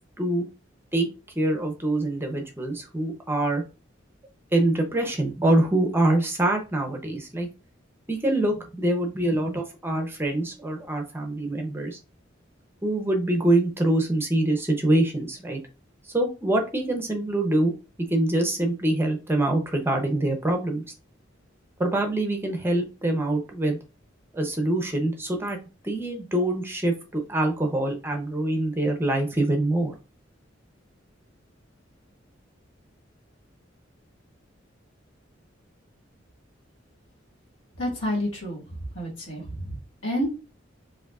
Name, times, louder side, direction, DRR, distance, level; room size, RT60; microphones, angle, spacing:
voice 1, 1.4-3.6 4.5-7.5 8.1-12.0 12.8-15.6 16.0-17.7 18.1-20.8 21.8-23.8 24.3-25.6 25.8-29.9, right 1 dB, 10° right, 3 dB, 0.7 m, -25 dB
voice 2, 37.8-39.8 40.0-40.3, equal, 75° left, -2 dB, 1.9 m, -29 dB
4.9 x 2.7 x 2.4 m, 0.31 s
head